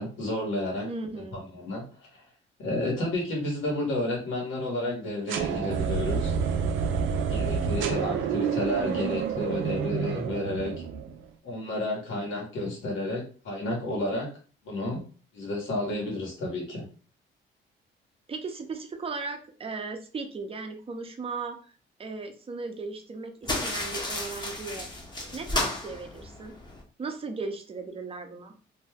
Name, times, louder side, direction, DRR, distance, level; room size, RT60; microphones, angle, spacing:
voice 1, 0.0-0.9 1.1-1.8 2.1-2.2 2.6-6.4 7.3-10.7 11.4-14.3 14.6-15.0 15.3-16.9, left 1 dB, 80° left, -1 dB, 1.4 m, -31 dB
voice 2, 0.9-1.5 18.3-21.7 22.0-25.0 25.3-26.5 27.0-28.5, right 4 dB, 30° right, 5 dB, 0.6 m, -37 dB
sound 1, 5.3-11.2, right 6 dB, 80° right, 0.5 m, -28 dB
sound 2, 23.4-26.8, left 2 dB, 20° left, 0.8 m, -33 dB
2.7 x 2.2 x 3.4 m, 0.38 s
cardioid pair, 90°, 20 cm